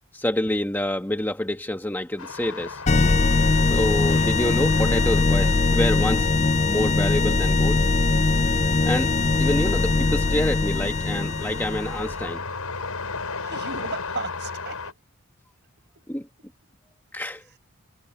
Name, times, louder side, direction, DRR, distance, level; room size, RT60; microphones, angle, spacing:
voice 1, 0.1-2.8 3.7-6.3 6.7-7.9 8.8-9.1 9.4-12.4 16.1-16.2 17.1-17.4, left 1 dB, 10° left, 1.6 m, -27 dB
sound 1, 2.2-14.9, left 4 dB, 90° left, 6.7 m, -37 dB
sound 2, 2.9-12.3, left 3 dB, 30° left, 0.5 m, -21 dB
voice 2, 13.4-15.0 16.0-16.3, right 3 dB, 50° right, 7.0 m, -36 dB
head